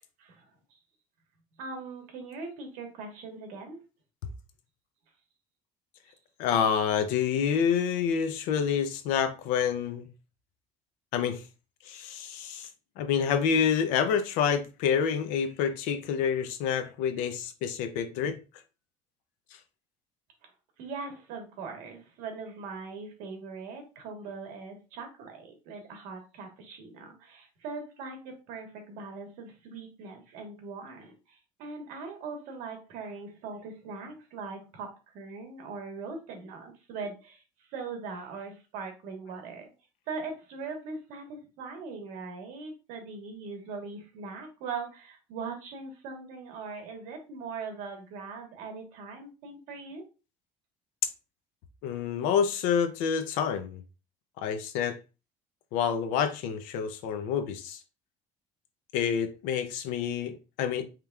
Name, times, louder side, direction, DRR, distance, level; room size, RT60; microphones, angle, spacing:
voice 1, 0.2-0.5 1.6-3.8 20.8-37.4 37.7-39.7 40.1-50.0, right 4 dB, 70° right, 1.3 m, -41 dB
voice 2, 6.4-10.1 11.1-11.4 11.8-12.7 13.0-18.3 51.8-53.8 54.4-55.0 55.7-57.8 58.9-60.8, left 7 dB, 75° left, 0.6 m, -28 dB
5.1 x 2.9 x 2.3 m
cardioid pair, 175°, 14 cm